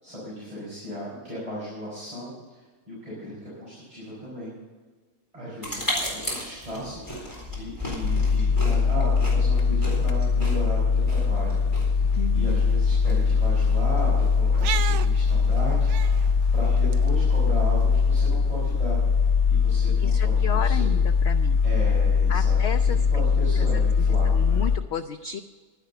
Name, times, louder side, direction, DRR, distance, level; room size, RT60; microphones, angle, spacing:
voice 1, 0.0-4.5 5.3-12.1 12.3-16.2 16.5-19.0 19.5-20.9 21.6-24.6, equal, 20° right, -8 dB, 5.5 m, -36 dB
sound 1, 5.6-16.9, left 1 dB, 10° left, 4.0 m, -37 dB
sound 2, 8.0-24.8, left 5 dB, 85° left, 1.6 m, -21 dB
voice 2, 12.2-12.6 20.0-21.6 22.3-23.2 23.6-25.4, left 7 dB, 70° left, 9 dB, 0.6 m, -33 dB
sound 3, 12.6-18.3, right 10 dB, 65° right, 0.7 m, -38 dB
11.5 x 11.0 x 6.7 m, 1.4 s
omnidirectional pair, 1.7 m